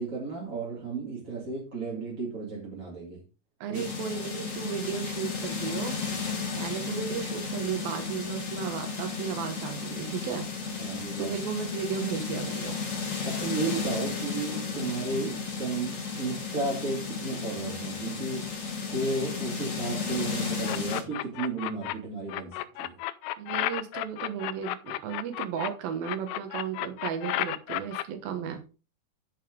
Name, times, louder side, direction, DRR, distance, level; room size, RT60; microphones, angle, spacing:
voice 1, 0.0-3.2 3.7-3.8 10.8-11.3 13.2-18.5 18.8-23.0, right 3 dB, 25° right, -4 dB, 2.1 m, -33 dB
voice 2, 3.6-6.0 6.6-10.5 10.9-12.8 15.1-15.3 23.4-28.6, right 8 dB, 75° right, 6 dB, 3.1 m, -34 dB
sound 1, 3.7-21.0, left 5 dB, 40° left, 1.1 m, -34 dB
sound 2, 20.6-21.9 22.3-25.7 26.0-28.0, left 15 dB, 85° left, 2.5 m, -32 dB
10.5 x 5.8 x 3.8 m, 0.33 s
omnidirectional pair, 4.4 m